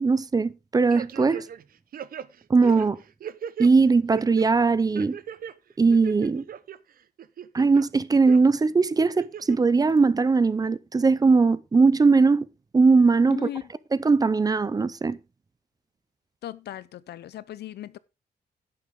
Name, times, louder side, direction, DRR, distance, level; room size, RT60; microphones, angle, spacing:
voice 1, 0.0-1.5 2.5-3.0 3.6-5.2 5.8-6.4 7.5-12.5 12.7-13.5 14.0-15.2, right 4 dB, 20° right, 0.6 m, -20 dB
sound 1, 0.9-1.6 1.9-3.7 4.1-4.5 4.9-5.5 5.9-6.8 7.2-7.8 8.3-8.4 9.0-9.6 10.0-10.1, right 9 dB, 60° right, 0.8 m, -37 dB
voice 2, 13.3-13.6 16.4-18.0, left 12 dB, 90° left, 0.7 m, -37 dB
11.0 x 9.7 x 3.7 m
wide cardioid pair, 140°, 17 cm